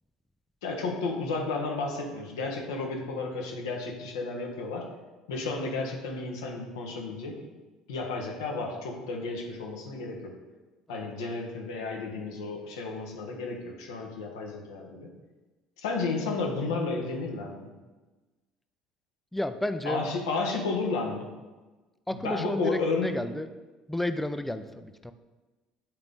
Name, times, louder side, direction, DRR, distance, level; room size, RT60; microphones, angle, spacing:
voice 1, 0.6-4.9 5.3-7.3 7.9-10.4 10.9-15.1 15.8-17.7 19.8-21.3 22.1-23.1, left 3 dB, 85° left, 1 dB, 1.2 m, -32 dB
voice 2, 19.3-20.0 22.1-23.5 23.9-25.1, left 1 dB, 5° left, 9 dB, 0.5 m, -31 dB
9.1 x 3.9 x 3.7 m, 1.2 s
hypercardioid pair, 70°, 2 cm